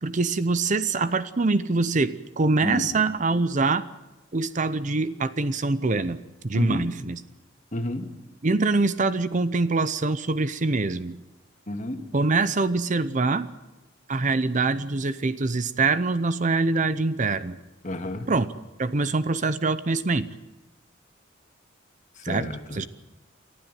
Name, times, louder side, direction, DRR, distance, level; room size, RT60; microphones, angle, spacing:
voice 1, 0.0-3.8 4.3-7.2 8.4-11.2 12.1-13.5 14.1-17.6 18.3-18.5 18.8-20.3 22.2-22.9, right 3 dB, 40° right, 14 dB, 0.7 m, -24 dB
voice 2, 6.5-6.9 7.7-8.1 11.7-12.0 17.8-18.3 22.2-22.8, left 1 dB, 40° left, 5 dB, 2.1 m, -31 dB
29.0 x 12.0 x 9.2 m, 1.1 s
head